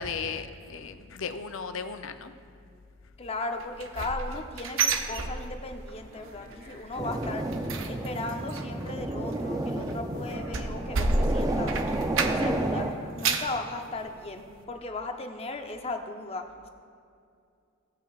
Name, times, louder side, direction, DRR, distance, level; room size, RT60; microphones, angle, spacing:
voice 1, 0.0-2.3, left 5 dB, 65° left, 8 dB, 0.6 m, -35 dB
voice 2, 3.2-7.4 7.9-11.7 12.2-12.9 13.2-16.7, left 2 dB, 30° left, 5 dB, 0.7 m, -36 dB
sound 1, 3.6-5.9 6.2-6.6 6.9-12.7 13.0-13.6 14.1-14.2 14.6-14.7, right 3 dB, 65° right, 0.6 m, -30 dB
Conversation, 5.6-14.0, equal, 45° right, 1.8 m, -51 dB
sound 2, 7.0-12.9, right 1 dB, 15° right, 0.5 m, -31 dB
17.0 x 8.4 x 2.4 m, 2.4 s
head